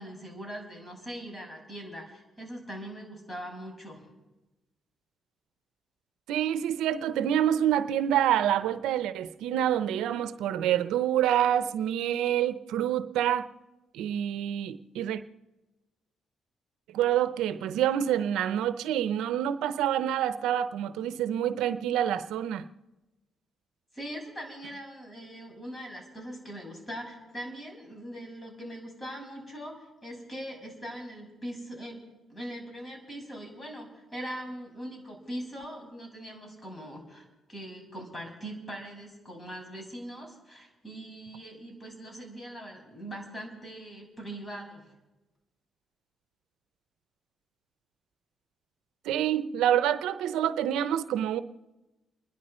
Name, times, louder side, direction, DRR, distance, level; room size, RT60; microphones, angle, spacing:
voice 1, 0.0-4.0 23.9-32.0 32.3-44.9, equal, 20° left, 0 dB, 6.5 m, -41 dB
voice 2, 6.3-13.5 13.9-15.2 16.9-22.6 49.0-51.4, right 10 dB, 90° right, 12 dB, 0.7 m, -27 dB
30.0 x 11.0 x 4.3 m, 1.1 s
cardioid pair, 90°, 0 cm